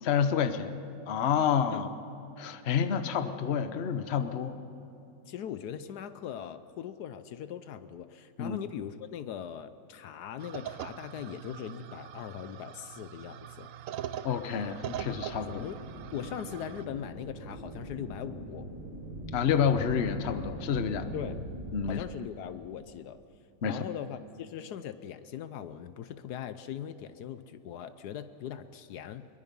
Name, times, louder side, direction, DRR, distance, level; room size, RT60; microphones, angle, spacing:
voice 1, 0.0-0.8 1.1-1.9 2.4-4.5 8.4-8.6 14.2-15.6 19.3-21.1 21.7-22.0 23.6-23.8, left 7 dB, 45° left, 10 dB, 1.0 m, -29 dB
voice 2, 5.3-13.7 15.4-15.8 16.1-18.7 21.1-21.4 21.9-23.2 23.6-29.3, left 9 dB, 75° left, 12 dB, 1.2 m, -40 dB
sound 1, 10.4-16.9, right 10 dB, 65° right, 0.9 m, -42 dB
sound 2, 14.8-21.9, right 1 dB, 50° right, 3.9 m, -42 dB
22.5 x 22.5 x 5.4 m, 2.9 s
omnidirectional pair, 1.8 m